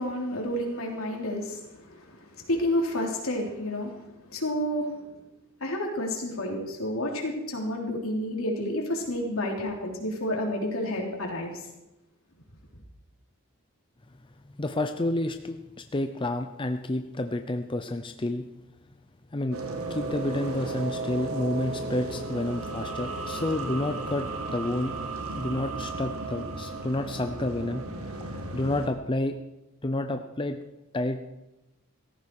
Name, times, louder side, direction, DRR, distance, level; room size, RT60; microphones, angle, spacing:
voice 1, 0.0-5.1 5.6-11.7, left 1 dB, 75° left, 0 dB, 3.4 m, -30 dB
voice 2, 14.6-18.4 19.3-19.6 19.9-24.9 25.4-27.8 28.3-29.4 29.8-30.6 30.9-31.2, left 1 dB, 25° left, 7 dB, 0.6 m, -30 dB
sound 1, 19.5-28.9, right 3 dB, 85° right, 1.9 m, -34 dB
17.0 x 14.0 x 4.8 m, 0.96 s
head